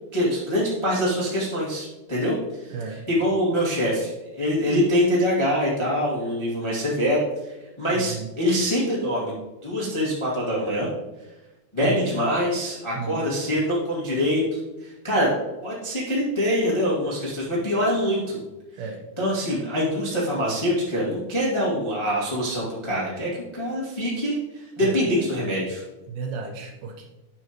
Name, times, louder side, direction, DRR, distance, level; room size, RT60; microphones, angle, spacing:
voice 1, 0.1-4.1 4.4-7.5 7.8-9.3 9.6-10.9 11.7-15.3 15.6-18.4 19.2-25.8, equal, 20° left, -6 dB, 0.8 m, -24 dB
voice 2, 2.7-3.0 7.9-8.3 11.8-12.0 12.9-13.2 18.8-19.0 24.8-25.0 26.1-27.1, right 5 dB, 75° right, 2 dB, 2.7 m, -33 dB
9.4 x 6.9 x 3.0 m, 1.1 s
omnidirectional pair, 4.6 m